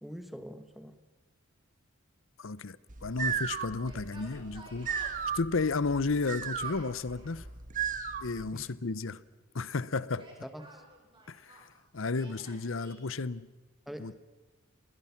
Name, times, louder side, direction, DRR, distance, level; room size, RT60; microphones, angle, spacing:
voice 1, 0.0-1.0 8.5-8.7 10.4-10.8 13.9-14.1, equal, ahead, 1.3 m, -44 dB
voice 2, 2.4-2.8 3.0-4.9 5.3-7.4 8.2-9.2 9.5-10.3 11.3-11.5 11.9-13.5 14.0-14.1, left 3 dB, 65° left, 0.8 m, -32 dB
sound 1, 2.9-8.5, right 7 dB, 40° right, 1.3 m, -36 dB
Yell, 3.8-5.3 6.4-7.4 10.0-11.7 12.1-13.0, right 1 dB, 25° right, 5.6 m, -53 dB
29.5 x 21.5 x 5.9 m
head